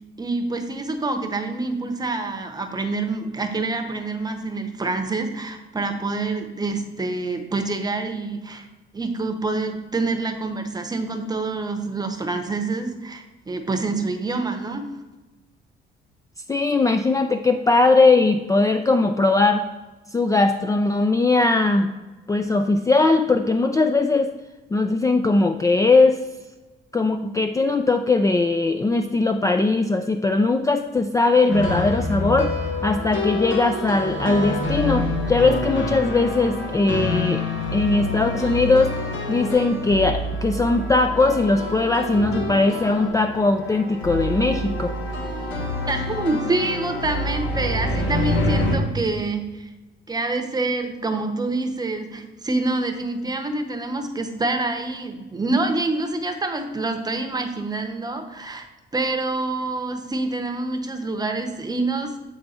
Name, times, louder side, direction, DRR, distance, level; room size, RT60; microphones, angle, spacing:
voice 1, 0.2-8.7 8.9-14.9 45.9-49.7 50.1-58.6 58.9-62.1, right 3 dB, 20° right, 5 dB, 0.8 m, -26 dB
voice 2, 16.5-19.6 20.1-21.9 22.3-24.3 24.7-26.2 26.9-37.4 37.7-39.0 39.3-44.9, left 3 dB, 15° left, 6 dB, 0.4 m, -20 dB
sound 1, 31.5-48.8, left 1 dB, 70° left, 1.4 m, -27 dB
7.8 x 3.4 x 4.2 m, 1.2 s
cardioid pair, 90°, 20 cm